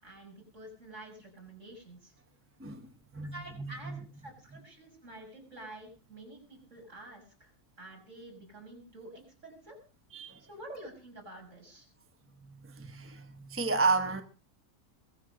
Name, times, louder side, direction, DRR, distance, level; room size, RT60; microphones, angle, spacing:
voice 1, 0.0-2.1 3.3-7.5 7.8-9.8 10.5-11.9, right 1 dB, 50° right, 6.6 m, -48 dB
voice 2, 2.6-4.0 10.1-10.4 12.4-14.2, right 4 dB, 10° right, 1.0 m, -32 dB
21.5 x 7.7 x 6.4 m
omnidirectional pair, 1.6 m